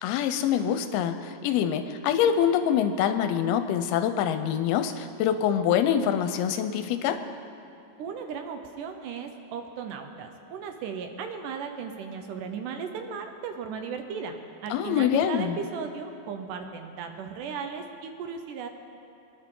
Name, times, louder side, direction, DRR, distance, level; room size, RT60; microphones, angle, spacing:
voice 1, 0.0-7.2 14.7-15.6, left 9 dB, 85° left, 8 dB, 2.5 m, -25 dB
voice 2, 8.0-18.7, right 6 dB, 75° right, 6 dB, 2.0 m, -36 dB
23.0 x 10.5 x 3.8 m, 2.9 s
omnidirectional pair, 4.4 m